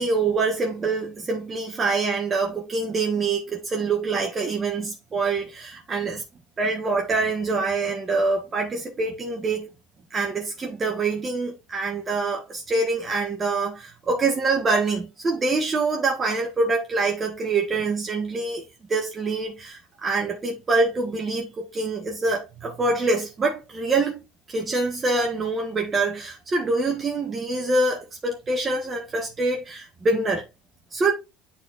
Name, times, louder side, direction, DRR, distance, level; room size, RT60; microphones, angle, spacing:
voice 1, 0.0-6.2 6.6-9.7 10.1-18.6 18.9-24.2 24.5-30.5 30.9-31.1, right 3 dB, 20° right, 1.3 m, -25 dB
10.0 x 4.4 x 2.5 m
cardioid pair, 145°, 0 cm